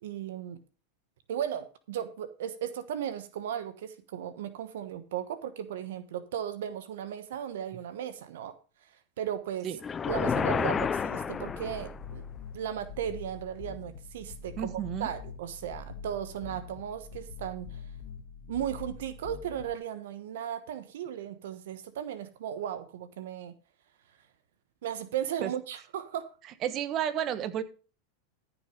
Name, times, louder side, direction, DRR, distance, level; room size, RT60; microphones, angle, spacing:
voice 1, 0.0-0.6 1.3-8.5 8.8-9.7 10.1-12.2 12.5-17.8 18.5-23.5 24.8-26.3, right 9 dB, 70° right, 12 dB, 1.1 m, -36 dB
sound 1, 9.8-12.1, left 6 dB, 25° left, 0.5 m, -30 dB
sound 2, 10.0-19.7, left 5 dB, 60° left, 1.9 m, -45 dB
voice 2, 14.6-15.1 25.4-25.5 26.6-27.6, right 10 dB, 40° right, 12 dB, 1.2 m, -31 dB
14.0 x 6.2 x 5.1 m, 0.35 s
hypercardioid pair, 100°, 0 cm